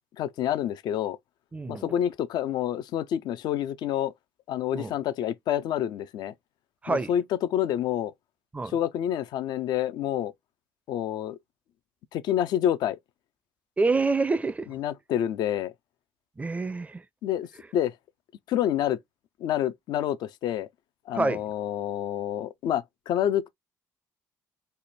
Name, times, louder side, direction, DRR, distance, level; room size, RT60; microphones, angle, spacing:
voice 1, 0.2-1.2 1.7-4.1 4.5-6.3 6.9-8.1 8.6-10.3 10.9-11.4 12.1-13.0 14.7-15.7 17.2-17.9 18.5-19.0 19.4-20.7 21.1-23.5, left 11 dB, 65° left, 0.4 m, -28 dB
voice 2, 1.5-1.9 4.7-4.9 6.8-7.1 8.5-8.7 13.8-14.7 16.4-17.0 21.1-21.4, right 3 dB, 20° right, 0.4 m, -27 dB
3.3 x 2.1 x 4.0 m
hypercardioid pair, 55°, 8 cm